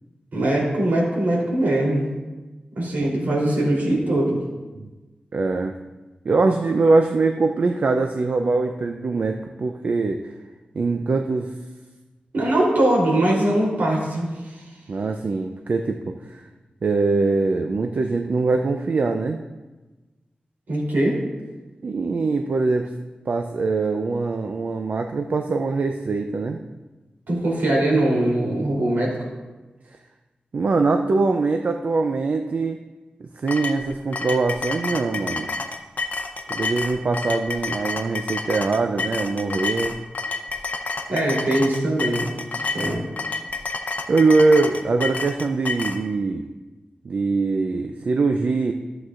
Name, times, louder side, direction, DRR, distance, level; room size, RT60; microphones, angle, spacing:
voice 1, 0.3-2.1 2.7-4.4 12.3-14.6 20.7-21.2 27.3-29.1 41.1-42.3 42.7-43.0, right 1 dB, 75° right, -4 dB, 3.3 m, -21 dB
voice 2, 5.3-5.7 6.2-10.4 10.7-11.5 14.9-16.4 16.8-19.4 21.8-22.9 23.3-26.6 29.9-30.0 30.5-32.8 33.2-35.5 36.5-40.0 44.1-46.4 47.0-48.7, right 3 dB, 55° right, 5 dB, 0.5 m, -22 dB
sound 1, 33.5-46.0, left 3 dB, 55° left, 0.6 m, -29 dB
14.0 x 7.8 x 2.5 m, 1.2 s
wide cardioid pair, 115°, 3 cm